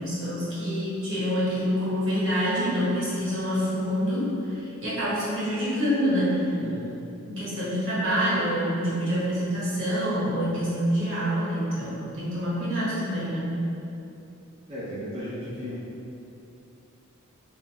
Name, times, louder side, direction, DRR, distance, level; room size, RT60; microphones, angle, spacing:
voice 1, 0.0-6.5 7.3-13.6, equal, 60° right, -9 dB, 1.2 m, -26 dB
voice 2, 6.6-7.0 14.7-15.8, equal, 30° right, -10 dB, 0.5 m, -35 dB
3.6 x 2.1 x 4.2 m, 2.8 s
head